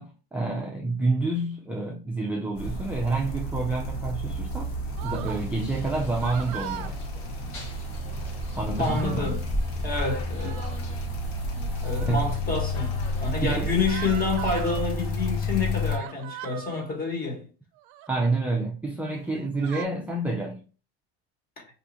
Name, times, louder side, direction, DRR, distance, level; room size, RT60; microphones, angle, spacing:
voice 1, 0.0-4.7 5.0-7.0 8.5-9.3 12.0-12.4 13.4-13.7 18.1-20.6, right 2 dB, 5° right, 0.4 m, -28 dB
sound 1, 2.6-16.0, left 1 dB, 50° left, 0.9 m, -31 dB
sound 2, 5.0-5.4 6.1-6.9 8.3-8.4 8.6-9.2 10.3-10.8 11.7-12.4 13.9-14.8 15.9-16.9 17.8-18.2 19.1-19.8, right 12 dB, 75° right, 0.5 m, -39 dB
sound 3, 5.4-14.3, left 3 dB, 80° left, 1.4 m, -47 dB
voice 2, 8.8-9.4 9.8-10.6 11.8-17.4, left 4 dB, 30° left, 1.3 m, -28 dB
2.8 x 2.4 x 4.0 m
cardioid pair, 125°, 30 cm